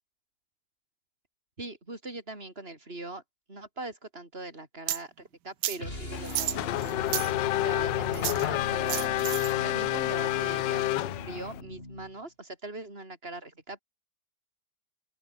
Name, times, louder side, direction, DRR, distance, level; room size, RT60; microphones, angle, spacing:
voice 1, 1.6-3.2 3.5-13.8, right 2 dB, 35° right, 5.8 m, -42 dB
sound 1, 4.9-5.0 5.6-5.8 6.2-7.3 8.1-8.4 8.9-9.5, right 12 dB, 75° right, 1.4 m, -31 dB
sound 2, 5.8-12.2, left 1 dB, 30° left, 7.0 m, -39 dB
Race car auto racing / Accelerating revving vroom, 6.1-11.6, left 17 dB, 90° left, 1.2 m, -29 dB
open air
omnidirectional pair, 1.9 m